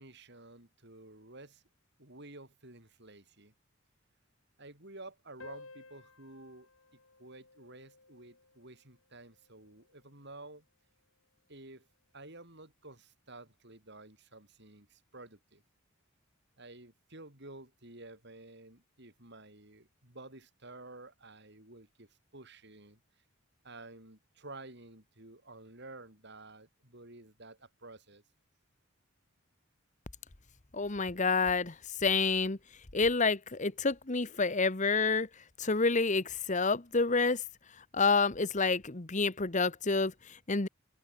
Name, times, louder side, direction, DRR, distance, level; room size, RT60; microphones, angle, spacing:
voice 1, 0.0-1.6 2.0-3.5 4.6-10.6 11.5-11.9 12.1-15.6 16.6-23.0 23.6-28.2, right 2 dB, 55° right, 6.8 m, -52 dB
sound 1, 5.4-10.4, left 3 dB, 80° left, 6.5 m, -56 dB
voice 2, 30.7-31.7 32.0-32.6 32.9-35.3 35.6-37.4 37.9-40.7, left 4 dB, 35° left, 1.3 m, -28 dB
open air
head